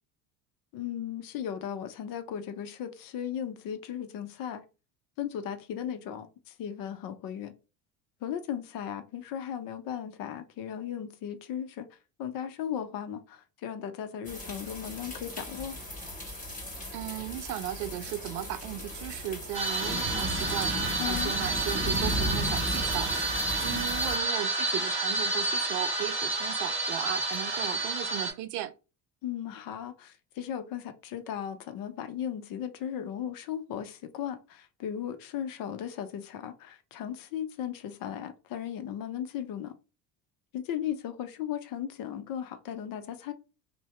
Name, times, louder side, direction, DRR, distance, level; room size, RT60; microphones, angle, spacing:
voice 1, 0.7-4.6 5.2-7.5 8.2-11.9 12.2-15.8 21.0-21.3 23.7-23.9 29.2-39.7 40.5-43.3, left 9 dB, 45° left, 0.6 m, -36 dB
sound 1, 14.2-24.2, equal, 15° left, 1.5 m, -36 dB
voice 2, 16.9-23.4 23.6-28.7, right 12 dB, 80° right, 0.5 m, -36 dB
sound 2, 19.5-28.3, right 2 dB, 25° right, 1.5 m, -30 dB
2.7 x 2.1 x 3.1 m
hypercardioid pair, 70°, 48 cm